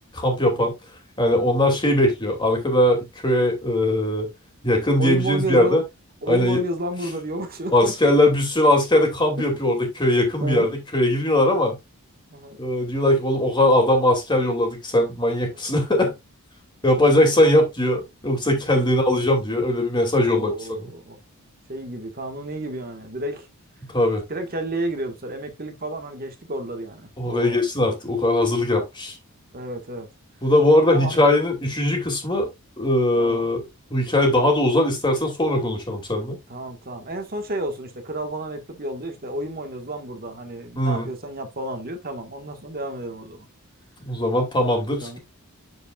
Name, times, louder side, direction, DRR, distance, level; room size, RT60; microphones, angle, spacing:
voice 1, 0.1-0.7 1.2-4.3 4.6-5.8 6.3-6.6 7.7-11.8 12.6-16.1 16.8-20.5 23.9-24.2 27.2-29.2 30.4-32.5 32.8-33.6 33.9-36.4 40.8-41.1 44.0-45.2, left 1 dB, 20° left, 2.7 m, -20 dB
voice 2, 5.0-5.8 6.2-8.2 9.5-9.6 10.4-10.8 12.3-12.6 15.4-15.6 18.7-18.9 20.2-21.2 21.7-23.5 24.3-27.6 28.7-28.8 29.5-30.1 30.9-31.2 33.2-33.5 36.5-43.5 45.0-45.2, right 1 dB, 40° right, 1.7 m, -31 dB
8.2 x 7.6 x 2.5 m
head